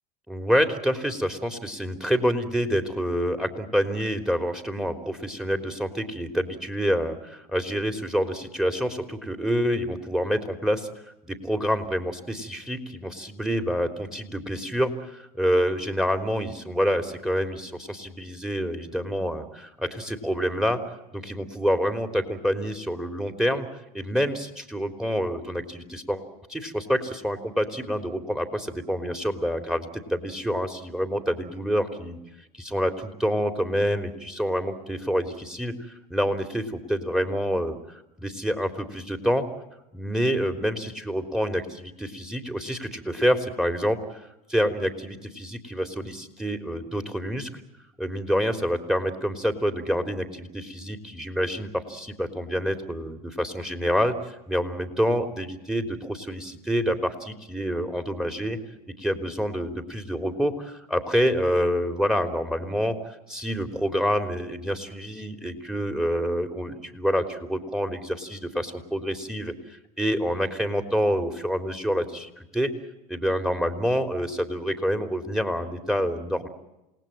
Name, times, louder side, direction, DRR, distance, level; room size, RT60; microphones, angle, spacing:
voice 1, 0.3-7.2 7.5-10.9 11.2-20.8 21.1-23.7 23.9-26.2 26.5-32.2 32.6-39.5 39.9-44.2 44.5-47.6 48.0-54.2 54.5-58.6 58.9-72.7 73.1-76.5, equal, 5° right, 8 dB, 3.5 m, -27 dB
28.5 x 19.0 x 9.2 m, 0.93 s
hypercardioid pair, 85°, 20 cm